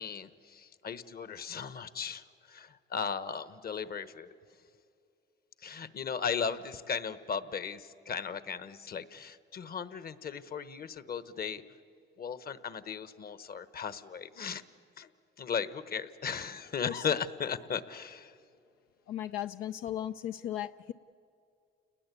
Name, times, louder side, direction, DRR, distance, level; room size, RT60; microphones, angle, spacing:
voice 1, 0.0-4.3 5.6-11.6 12.2-14.6 15.0-15.1 15.4-18.3, left 6 dB, 50° left, 14 dB, 1.1 m, -36 dB
voice 2, 19.1-20.9, left 11 dB, 90° left, 9 dB, 0.5 m, -36 dB
29.5 x 20.0 x 8.4 m, 2.6 s
cardioid pair, 90°, 20 cm